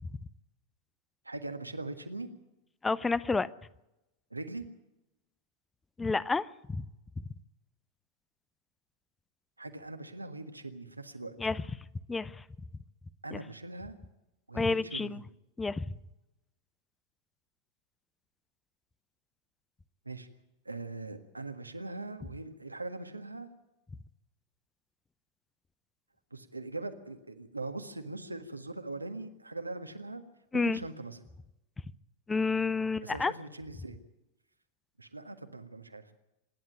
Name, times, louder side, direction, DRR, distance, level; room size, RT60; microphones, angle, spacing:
voice 1, 1.2-2.3 4.3-4.6 9.6-11.3 13.2-13.9 14.5-15.2 20.0-20.3 20.6-23.5 26.3-30.2 30.5-31.2 33.0-34.0 35.0-36.1, right 2 dB, 85° right, 7 dB, 1.6 m, -41 dB
voice 2, 2.8-3.5 6.0-6.9 11.4-11.6 12.1-12.4 13.3-13.4 14.5-15.2 15.6-15.8 30.5-30.8 32.3-33.3, left 4 dB, 10° left, 19 dB, 0.6 m, -30 dB
25.5 x 11.0 x 9.1 m, 0.92 s
figure-of-eight pair, 90°, 0 cm